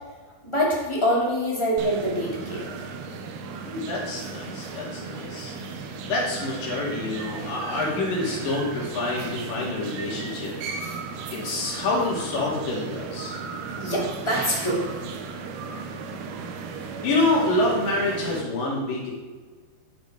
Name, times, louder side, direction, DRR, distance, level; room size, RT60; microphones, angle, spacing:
voice 1, 0.4-2.6 10.8-11.0 13.8-14.8, equal, 10° left, -5 dB, 2.2 m, -25 dB
sound 1, 1.8-18.4, right 4 dB, 80° right, 2.8 m, -36 dB
voice 2, 3.6-5.5 6.0-10.5 11.3-13.4 17.0-19.1, left 2 dB, 60° left, -4 dB, 4.0 m, -27 dB
11.0 x 6.5 x 5.0 m, 1.4 s
omnidirectional pair, 4.6 m